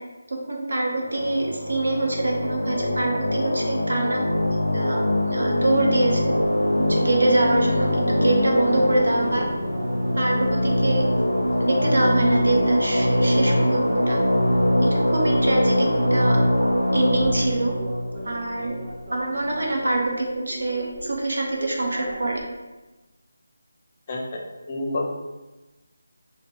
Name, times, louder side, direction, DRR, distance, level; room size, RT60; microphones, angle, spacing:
voice 1, 0.3-4.2 4.7-5.0 5.2-6.3 6.7-9.4 10.1-11.1 11.6-14.2 14.8-16.4 16.9-17.7 18.2-18.8 19.1-22.4, right 2 dB, 65° right, -1 dB, 0.9 m, -25 dB
sound 1, 1.0-19.1, left 1 dB, 85° left, 0.4 m, -23 dB
sound 2, 4.9-22.4, right 1 dB, 25° right, 1.0 m, -39 dB
sound 3, 6.3-14.7, right 2 dB, 40° right, 0.4 m, -37 dB
voice 2, 24.1-25.1, left 2 dB, 30° left, 0 dB, 0.5 m, -29 dB
3.6 x 2.1 x 3.6 m, 1.1 s
figure-of-eight pair, 160°, 0 cm